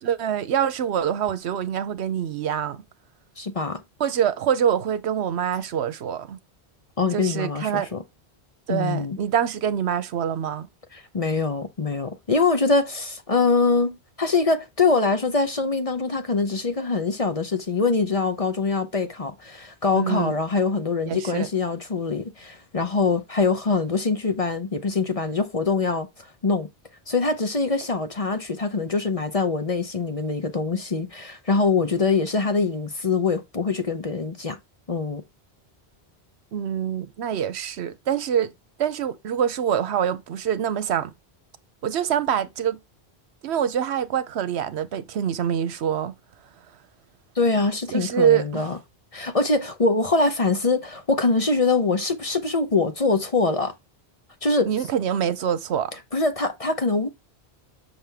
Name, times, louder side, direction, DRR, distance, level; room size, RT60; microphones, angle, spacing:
voice 1, 0.0-2.8 4.0-6.4 7.1-7.9 8.7-10.7 19.9-20.3 21.1-21.5 36.5-38.5 38.8-41.1 41.8-42.8 43.4-46.1 47.9-48.7 54.6-55.9, right 9 dB, 75° right, 1.0 m, -25 dB
voice 2, 3.4-3.8 7.0-8.0 8.7-9.2 10.9-26.7 27.1-34.6 34.9-35.2 47.4-48.8 49.1-53.7 54.4-54.7 56.1-57.1, left 4 dB, 35° left, 0.8 m, -23 dB
7.4 x 5.8 x 3.5 m
omnidirectional pair, 1.1 m